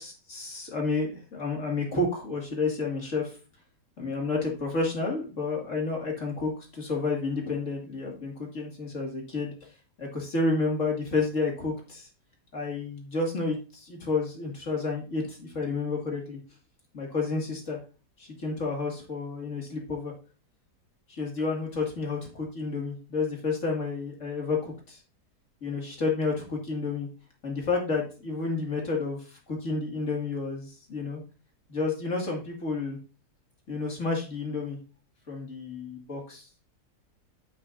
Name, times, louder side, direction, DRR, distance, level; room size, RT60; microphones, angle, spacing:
voice 1, 0.0-3.3 4.0-9.5 10.0-12.1 12.5-16.4 16.9-17.8 18.2-20.1 21.1-25.0 25.6-27.1 27.4-29.2 29.5-31.2 31.7-33.0 33.7-34.8 35.3-36.5, left 3 dB, 50° left, 0 dB, 2.5 m, -30 dB
9.2 x 7.4 x 2.6 m, 0.33 s
omnidirectional pair, 1.8 m